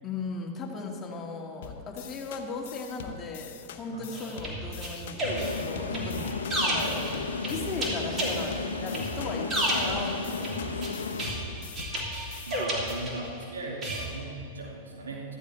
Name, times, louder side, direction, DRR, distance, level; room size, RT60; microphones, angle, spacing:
voice 1, 0.0-6.3 6.6-10.7, left 3 dB, 25° left, -1 dB, 2.1 m, -37 dB
sound 1, 1.6-12.7, left 8 dB, 65° left, 0.9 m, -44 dB
sound 2, 4.1-13.4 13.8-14.1, right 1 dB, 30° right, 3.3 m, -32 dB
sound 3, 5.2-11.8, left 4 dB, 85° left, 0.8 m, -34 dB
voice 2, 12.4-15.4, right 2 dB, 85° right, -2 dB, 2.5 m, -37 dB
14.0 x 13.5 x 3.4 m, 2.6 s
hypercardioid pair, 100°, 0 cm